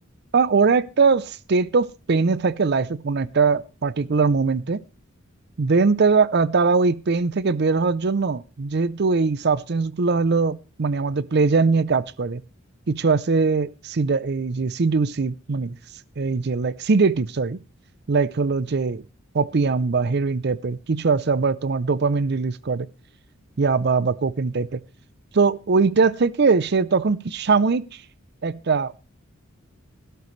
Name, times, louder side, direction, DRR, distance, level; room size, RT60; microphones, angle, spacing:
voice 1, 0.3-4.8 5.6-12.4 12.9-15.8 16.2-17.6 18.1-19.0 19.3-22.9 23.6-24.8 25.3-27.9 28.4-28.9, right 4 dB, 55° right, 0.5 m, -21 dB
17.5 x 12.5 x 3.2 m
head